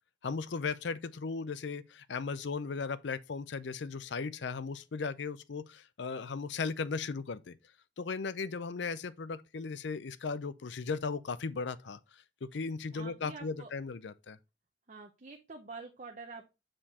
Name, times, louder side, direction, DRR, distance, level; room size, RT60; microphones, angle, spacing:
voice 1, 0.2-7.6 8.0-14.4, left 4 dB, 70° left, 0.5 m, -37 dB
voice 2, 12.9-13.7 14.9-16.5, right 4 dB, 40° right, 0.7 m, -47 dB
7.5 x 4.4 x 2.8 m
head